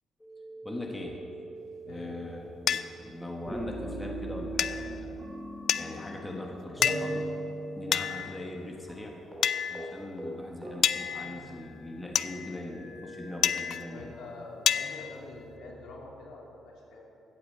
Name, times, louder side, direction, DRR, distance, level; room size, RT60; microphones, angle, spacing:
voice 1, 0.2-5.3 5.8-7.3 7.8-9.2 9.7-14.1, left 1 dB, 10° left, 0 dB, 1.2 m, -40 dB
voice 2, 1.8-2.2 10.8-10.9 13.9-17.0, left 2 dB, 75° left, -2 dB, 3.0 m, -45 dB
sound 1, 2.7-2.8 4.6-5.0 5.7-6.1 6.8-7.2 7.9-8.5 9.4-10.0 10.8-11.6 12.1-12.7 13.4-14.0 14.7-15.2, left 9 dB, 55° left, 0.4 m, -29 dB
sound 2, 3.5-6.4 6.8-8.6 8.9-9.0 9.3-9.5 9.7-9.9 10.2-11.9 12.7-14.2 15.0-15.9, right 1 dB, 10° right, 3.0 m, -39 dB
14.0 x 8.6 x 8.6 m, 2.9 s
cardioid pair, 175°, 0 cm